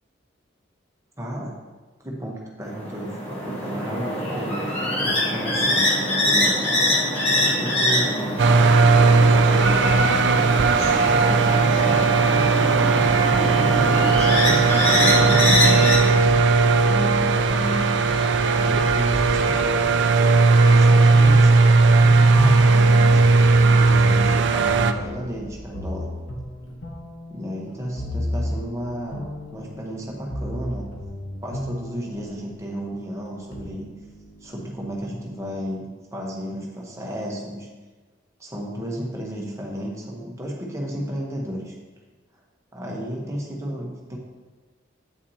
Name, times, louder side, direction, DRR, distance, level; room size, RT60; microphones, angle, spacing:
voice 1, 1.2-1.5 2.0-4.7 5.0-5.9 6.2-6.8 7.3-8.4 8.9-9.9 11.2-12.2 12.7-13.1 13.5-16.4 16.8-19.8 20.7-21.5 22.4-26.1 27.3-29.3 29.5-30.9 31.4-33.9 34.4-35.8 36.1-37.7 38.4-41.8 42.7-44.2, equal, 15° right, -2 dB, 1.0 m, -33 dB
sound 1, 2.7-16.0, left 1 dB, 30° left, 1.2 m, -23 dB
sound 2, 8.4-24.9, right 4 dB, 65° right, 0.4 m, -17 dB
sound 3, 21.1-32.6 33.3-35.7, equal, 75° left, 1.0 m, -33 dB
8.3 x 6.0 x 2.8 m, 1.3 s
head